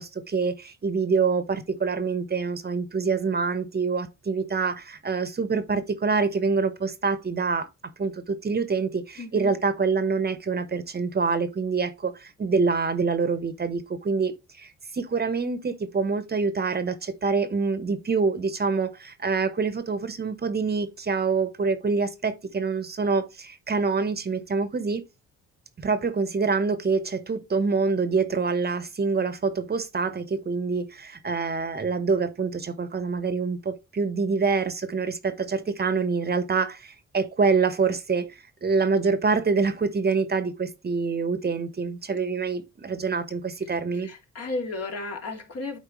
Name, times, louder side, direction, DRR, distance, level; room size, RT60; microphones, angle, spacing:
voice 1, 0.0-7.7 8.0-25.0 25.8-44.1, right 4 dB, 35° right, 1.0 m, -26 dB
voice 2, 9.2-9.5 44.0-45.8, left 3 dB, 55° left, 2.7 m, -33 dB
11.0 x 4.4 x 3.1 m
cardioid pair, 90°, 30 cm